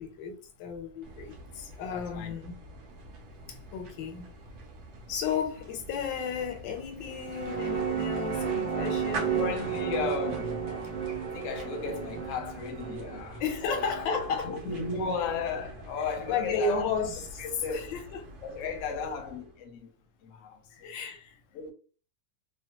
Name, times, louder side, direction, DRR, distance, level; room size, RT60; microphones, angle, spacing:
voice 1, 0.0-2.6 3.5-4.3 5.1-10.0 13.4-14.5 16.3-17.4 17.7-18.3 20.8-21.4, left 5 dB, 90° left, 1.3 m, -33 dB
sound 1, 1.0-19.6, right 2 dB, 70° right, 1.1 m, -46 dB
voice 2, 1.9-2.3 9.4-10.7 11.1-14.2 14.5-16.9 17.4-17.9 18.4-19.9 20.2-21.0 21.5-21.7, left 5 dB, 65° left, 0.8 m, -35 dB
sound 2, 7.0-15.7, right 7 dB, 85° right, 1.4 m, -34 dB
3.1 x 2.1 x 2.8 m
omnidirectional pair, 1.9 m